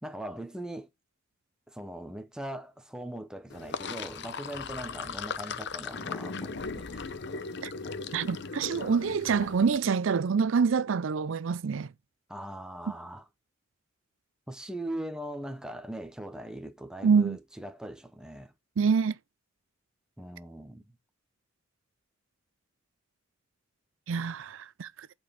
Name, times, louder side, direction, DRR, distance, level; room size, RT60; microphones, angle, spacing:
voice 1, 0.0-0.9 1.7-7.1 12.3-13.3 14.5-18.5 20.2-20.8, right 1 dB, 5° right, 0.9 m, -40 dB
Sink (filling or washing), 3.5-9.8, left 4 dB, 55° left, 0.7 m, -38 dB
voice 2, 8.1-11.9 17.0-17.4 18.8-19.2 24.1-24.9, right 5 dB, 70° right, 0.4 m, -26 dB
8.4 x 4.4 x 5.7 m
head